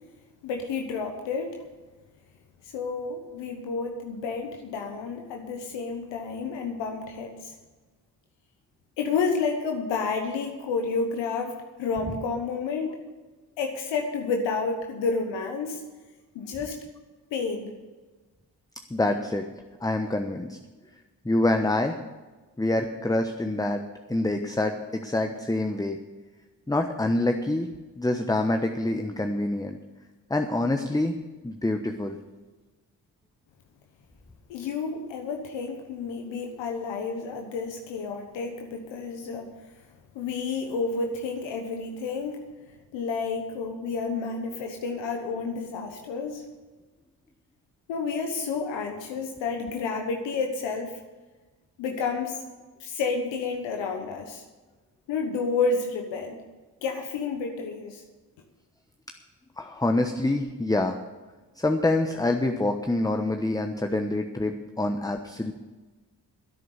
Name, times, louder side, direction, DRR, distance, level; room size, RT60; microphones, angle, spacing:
voice 1, 0.4-1.6 2.6-7.6 9.0-13.0 13.6-15.8 16.3-16.8 17.3-17.7 34.5-39.8 40.1-42.4 42.9-46.5 47.9-51.0 51.8-52.4 52.8-54.4 55.1-56.4 56.8-58.0, left 4 dB, 90° left, 3 dB, 1.2 m, -30 dB
voice 2, 18.9-19.4 19.8-20.6 21.2-22.0 22.6-23.8 24.1-26.0 26.7-27.7 28.0-29.8 30.3-31.2 31.4-32.2 59.6-61.0 61.6-65.5, left 2 dB, 10° left, 5 dB, 1.1 m, -26 dB
11.0 x 9.1 x 8.1 m, 1.3 s
supercardioid pair, 45°, 43 cm